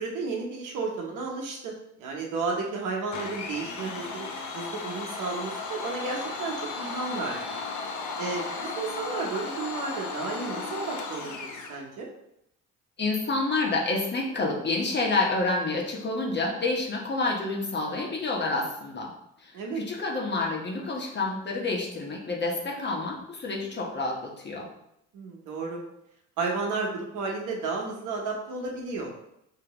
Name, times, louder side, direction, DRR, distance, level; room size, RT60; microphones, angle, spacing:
voice 1, 0.0-1.7 2.0-7.6 8.2-12.1 19.5-19.8 25.1-25.8 26.4-29.2, right 4 dB, 90° right, -1 dB, 1.1 m, -33 dB
Domestic sounds home sounds, 3.1-11.8, left 4 dB, 75° left, 0.8 m, -35 dB
voice 2, 13.0-19.1 19.4-24.7, left 3 dB, 35° left, -1 dB, 1.1 m, -28 dB
5.2 x 2.9 x 3.0 m, 0.78 s
cardioid pair, 90°, 30 cm